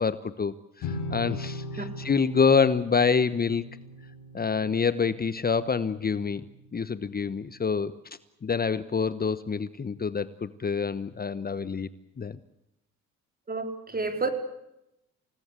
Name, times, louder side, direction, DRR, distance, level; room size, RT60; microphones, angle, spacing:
voice 1, 0.0-3.6 4.3-6.4 6.7-8.0 8.4-11.9 12.2-12.4, left 5 dB, 30° left, 14 dB, 1.1 m, -26 dB
sound 1, 0.8-6.4, left 1 dB, 80° left, 5.9 m, -39 dB
voice 2, 13.5-14.3, right 3 dB, 30° right, 7 dB, 4.5 m, -30 dB
28.5 x 18.5 x 8.3 m, 0.85 s
cardioid pair, 90°, 30 cm